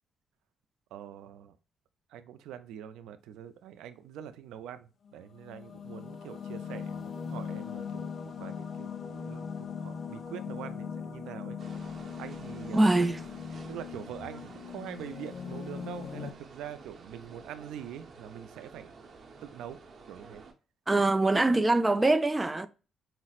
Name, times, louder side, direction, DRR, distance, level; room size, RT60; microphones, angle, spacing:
voice 1, 0.9-1.6 2.1-11.6 12.2-12.9 13.7-18.9 19.4-19.8 20.1-20.4, right 10 dB, 85° right, 0.4 m, -44 dB
sound 1, 5.1-16.3, left 7 dB, 50° left, 0.4 m, -40 dB
sound 2, 11.6-20.5, right 4 dB, 50° right, 0.8 m, -51 dB
voice 2, 12.7-13.2 20.9-22.7, right 2 dB, 20° right, 0.4 m, -23 dB
5.6 x 2.0 x 2.4 m
cardioid pair, 90°, 0 cm